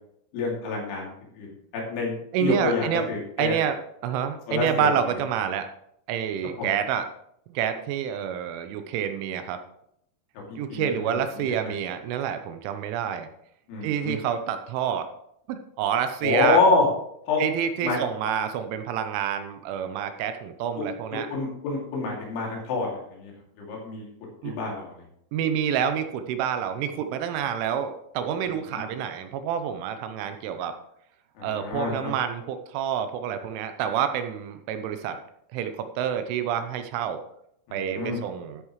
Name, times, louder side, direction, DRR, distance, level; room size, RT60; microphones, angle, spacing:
voice 1, 0.3-1.1 1.3-1.5 1.7-3.6 4.5-5.1 6.6-6.7 10.5-11.6 13.7-14.2 16.2-16.9 17.3-17.4 17.8-18.0 20.8-20.9 21.1-24.1 24.4-25.0 28.4-28.8 31.4-32.1 37.7-38.2, left 3 dB, 70° left, -2 dB, 5.0 m, -27 dB
voice 2, 2.3-3.1 3.4-3.8 4.0-5.7 6.1-7.0 7.5-9.6 10.6-13.3 13.8-15.1 15.5-16.6 17.4-21.3 24.4-24.5 25.3-30.7 31.4-35.2 35.5-37.2 37.7-38.6, right 8 dB, 80° right, 8 dB, 3.1 m, -28 dB
13.5 x 9.2 x 3.2 m, 0.74 s
omnidirectional pair, 5.8 m